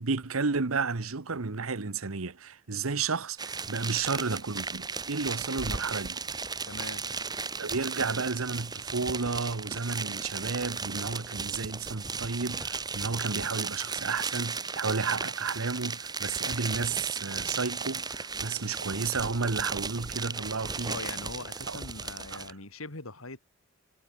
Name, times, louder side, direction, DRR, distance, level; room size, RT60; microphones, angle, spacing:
voice 1, 0.0-6.2 7.6-21.0 21.7-21.8 22.3-22.4, right 4 dB, 90° right, 1.1 m, -32 dB
sound 1, 3.4-22.5, right 4 dB, 20° right, 2.5 m, -35 dB
voice 2, 6.7-7.0 20.9-23.4, left 3 dB, 90° left, 4.0 m, -41 dB
head